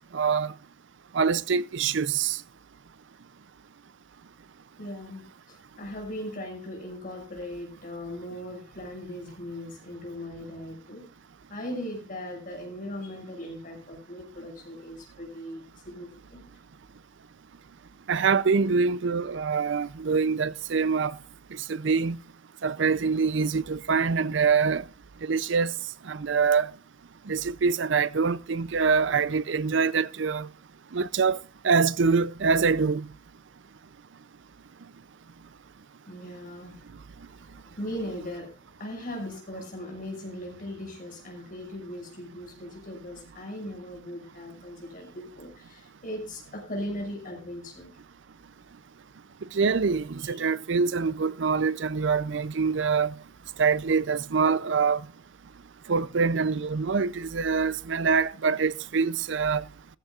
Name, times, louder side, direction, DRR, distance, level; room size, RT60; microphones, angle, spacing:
voice 1, 0.1-0.5 1.1-2.4 18.1-21.1 21.5-22.2 22.6-24.8 25.2-25.7 26.1-26.7 27.3-30.5 30.9-31.4 31.6-33.0 49.5-53.1 53.6-55.0 55.9-59.6, right 5 dB, 65° right, 0.5 m, -25 dB
voice 2, 4.8-11.0 11.5-16.5 36.1-36.8 37.3-47.9 50.2-50.4, left 1 dB, 45° left, 6.2 m, -39 dB
15.5 x 15.0 x 2.4 m
head